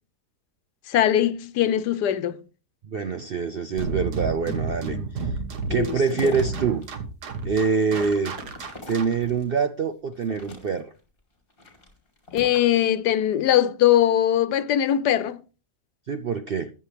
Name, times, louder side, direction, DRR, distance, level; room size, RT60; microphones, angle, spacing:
voice 1, 0.9-2.4 5.7-6.4 12.3-15.4, left 11 dB, 90° left, 1.3 m, -21 dB
voice 2, 2.8-5.3 5.7-6.9 7.4-8.4 8.9-10.9 16.1-16.7, right 5 dB, 65° right, 0.5 m, -25 dB
sound 1, 3.8-9.3, right 3 dB, 85° right, 1.9 m, -31 dB
sound 2, 5.6-6.9 7.3-9.6 10.1-11.0 11.5-12.8, left 2 dB, 35° left, 3.1 m, -42 dB
14.0 x 9.8 x 3.4 m
omnidirectional pair, 1.7 m